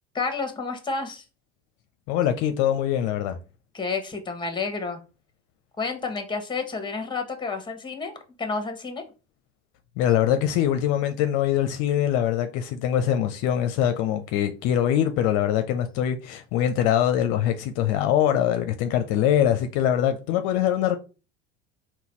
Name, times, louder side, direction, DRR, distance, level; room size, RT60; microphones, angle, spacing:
voice 1, 0.1-1.2 3.7-5.0 5.8-9.0, left 4 dB, 15° left, 1.1 m, -30 dB
voice 2, 2.1-3.4 10.0-21.0, left 10 dB, 60° left, 0.6 m, -23 dB
3.9 x 2.3 x 4.4 m
hypercardioid pair, 75°, 34 cm